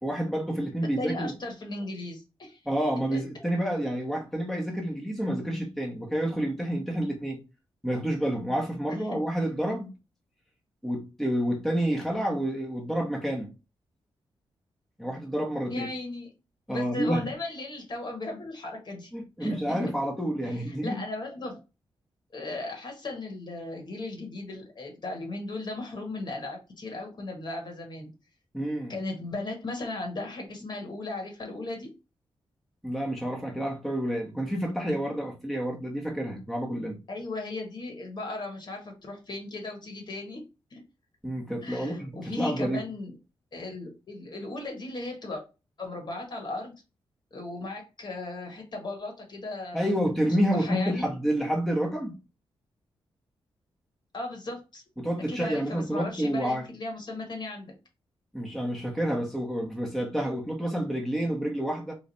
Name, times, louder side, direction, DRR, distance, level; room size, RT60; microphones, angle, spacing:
voice 1, 0.0-1.3 2.6-7.4 7.8-9.9 10.8-13.5 15.0-15.9 16.7-17.3 19.1-21.0 28.5-29.0 32.8-37.0 41.2-42.8 49.7-52.1 55.0-56.6 58.3-61.9, equal, ahead, 1.0 m, -29 dB
voice 2, 1.0-2.6 3.1-3.2 15.7-16.3 16.7-19.1 19.4-19.8 20.5-21.6 22.3-28.1 28.9-31.9 37.1-40.4 40.7-40.8 41.6-43.1 43.5-45.4 45.8-46.7 47.3-49.9 50.2-51.1 54.1-54.8 55.3-57.7, left 2 dB, 50° left, 1.4 m, -36 dB
3.1 x 2.5 x 4.0 m
cardioid pair, 100°, 10 cm